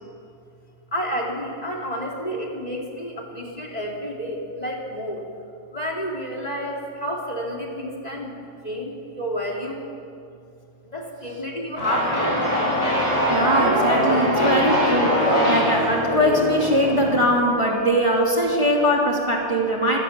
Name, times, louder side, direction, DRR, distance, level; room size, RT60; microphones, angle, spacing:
voice 1, 0.9-5.2 5.7-8.3 8.6-9.8 10.9-12.3, equal, 30° left, -1 dB, 2.9 m, -30 dB
sound 1, 11.8-17.2, equal, 55° left, 8.3 m, -22 dB
voice 2, 13.3-20.0, equal, 20° right, -2 dB, 3.0 m, -21 dB
26.0 x 16.5 x 7.2 m, 2.5 s
omnidirectional pair, 1.5 m